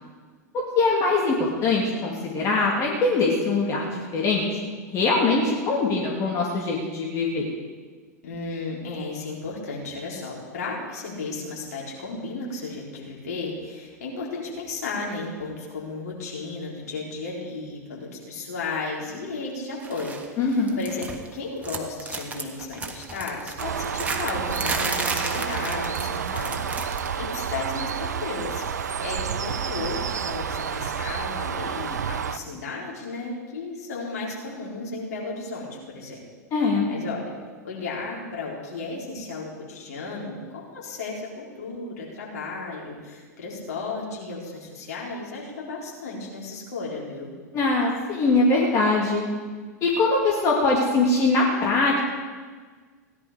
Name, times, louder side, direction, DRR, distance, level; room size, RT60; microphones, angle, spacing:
voice 1, 0.5-4.6 4.9-7.5 20.4-20.8 36.5-36.9 47.5-49.2 49.8-52.0, left 3 dB, 35° left, -2 dB, 2.6 m, -22 dB
voice 2, 8.2-36.2 36.9-37.3 37.6-47.3, left 3 dB, 65° left, -3 dB, 4.2 m, -34 dB
sound 1, 19.8-20.3 20.5-21.3 21.6-27.2 27.4-27.7 28.8-28.9, right 3 dB, 15° right, 1.6 m, -33 dB
Bird, 23.6-32.4, right 7 dB, 70° right, 0.6 m, -30 dB
17.5 x 11.0 x 5.1 m, 1.5 s
figure-of-eight pair, 95°, 9 cm